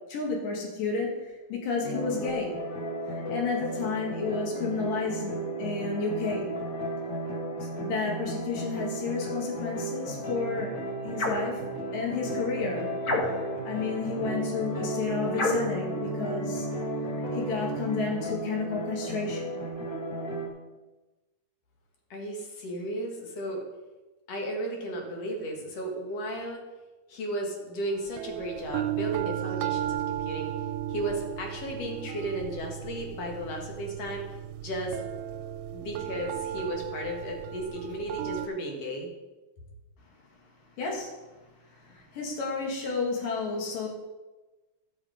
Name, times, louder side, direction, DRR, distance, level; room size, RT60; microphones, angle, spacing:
voice 1, 0.1-1.1 1.5-2.6 3.3-5.3 5.6-6.5 7.8-10.7 11.0-11.6 11.9-12.9 13.7-16.7 17.1-19.6 40.8-41.1 41.7-43.9, left 4 dB, 90° left, -1 dB, 3.5 m, -31 dB
sound 1, 1.8-20.5, right 1 dB, 40° left, 1.5 m, -34 dB
sound 2, 11.1-11.5 13.0-13.6 15.3-15.8, left 2 dB, 75° left, 0.8 m, -28 dB
voice 2, 22.1-23.6 24.3-26.6 27.1-30.5 30.9-34.3 34.6-35.0 35.7-39.1, right 1 dB, 55° left, 1 dB, 2.5 m, -34 dB
sound 3, 28.1-38.5, right 12 dB, 85° right, 2.1 m, -35 dB
13.0 x 6.3 x 5.0 m, 1.1 s
omnidirectional pair, 3.7 m